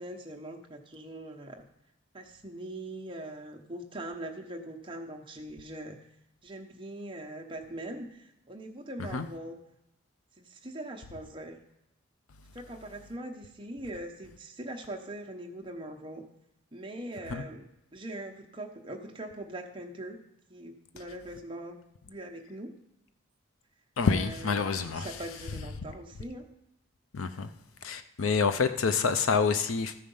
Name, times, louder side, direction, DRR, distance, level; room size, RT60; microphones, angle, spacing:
voice 1, 0.0-1.6 2.1-6.0 6.4-9.5 10.4-11.6 12.5-16.2 16.7-17.6 17.9-20.2 20.5-21.8 22.1-22.8 24.1-24.7 25.0-26.5, right 1 dB, 25° right, 0.9 m, -41 dB
voice 2, 24.0-25.2 27.1-27.5 27.8-29.9, left 5 dB, 85° left, 0.6 m, -27 dB
14.0 x 5.0 x 5.5 m
head